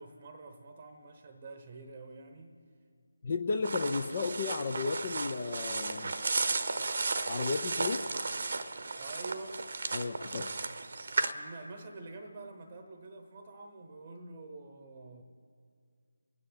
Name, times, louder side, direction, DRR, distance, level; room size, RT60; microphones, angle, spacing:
voice 1, 0.0-2.6 9.0-9.6 11.3-15.2, right 3 dB, 25° right, 6 dB, 1.0 m, -47 dB
voice 2, 3.2-6.1 7.3-8.1 9.9-10.5, left 4 dB, 35° left, 6 dB, 0.7 m, -33 dB
Walking in a forest quickly, 3.6-11.3, right 3 dB, 45° right, 0.9 m, -34 dB
24.5 x 9.7 x 4.0 m, 2.2 s
figure-of-eight pair, 160°, 0 cm